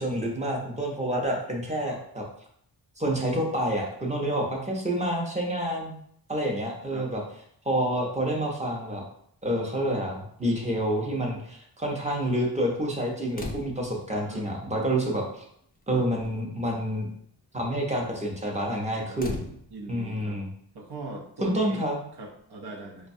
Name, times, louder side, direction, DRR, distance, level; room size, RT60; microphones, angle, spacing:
voice 1, 0.0-2.2 3.0-5.9 6.3-7.2 7.6-9.0 9.4-15.4 15.9-17.1 17.5-19.4 19.9-20.5 21.4-22.0, right 1 dB, 15° right, -1 dB, 0.6 m, -28 dB
sound 1, 13.3-14.1 15.1-15.2 15.6-15.9 16.2-16.5 19.2-20.1 21.7-21.8, left 2 dB, 25° left, 0.3 m, -38 dB
voice 2, 18.9-19.2 19.7-20.4 20.7-21.9 22.2-23.1, right 2 dB, 75° right, 1 dB, 0.8 m, -40 dB
4.8 x 2.2 x 2.6 m, 0.67 s
wide cardioid pair, 155°, 39 cm